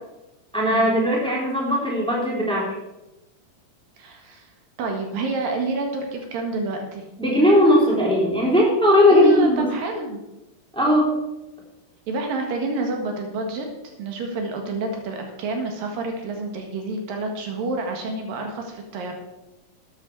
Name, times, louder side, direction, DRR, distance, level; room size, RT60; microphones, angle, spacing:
voice 1, 0.5-2.7 7.2-9.6 10.7-11.2, left 1 dB, ahead, -3 dB, 2.9 m, -18 dB
voice 2, 4.0-4.5 4.8-7.0 9.1-10.2 12.1-13.7 14.0-19.1, right 3 dB, 80° right, 3 dB, 3.4 m, -28 dB
12.5 x 9.6 x 4.7 m, 0.98 s
omnidirectional pair, 4.0 m